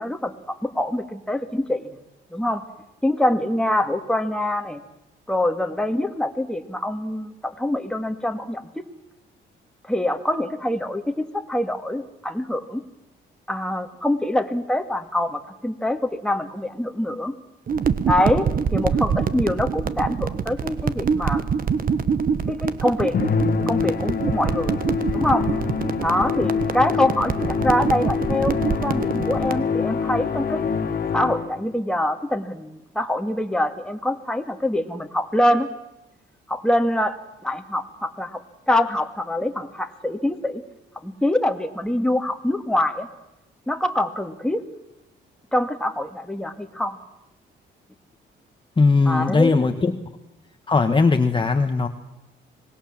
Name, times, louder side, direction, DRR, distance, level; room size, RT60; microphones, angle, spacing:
voice 1, 0.0-1.9 2.3-2.7 3.0-4.8 5.3-8.8 9.8-12.8 13.5-17.3 18.1-21.5 22.5-23.1 23.7-24.8 25.1-25.5 26.0-30.7 31.1-35.7 36.5-38.4 38.7-40.6 41.0-43.1 43.7-44.6 45.5-47.0 49.1-49.5 49.8-50.1, left 1 dB, 5° left, 5 dB, 2.2 m, -24 dB
sound 1, 17.7-29.6, right 6 dB, 45° right, 1.3 m, -25 dB
Musical instrument, 23.1-31.7, left 6 dB, 50° left, 1.8 m, -25 dB
voice 2, 48.8-49.9 50.7-51.9, left 4 dB, 25° left, 6 dB, 1.3 m, -19 dB
25.5 x 20.0 x 7.5 m, 0.94 s
cardioid pair, 90°, 20 cm